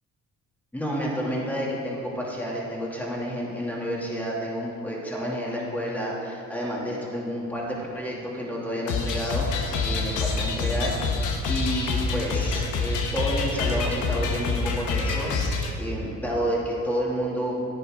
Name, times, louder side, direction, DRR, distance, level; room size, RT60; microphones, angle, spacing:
voice 1, 0.7-9.5 9.8-11.0 11.5-17.6, equal, 5° left, -4 dB, 2.5 m, -30 dB
sound 1, 8.9-15.7, left 4 dB, 85° left, 1.2 m, -26 dB
10.0 x 9.7 x 3.7 m, 2.5 s
cardioid pair, 90°, 30 cm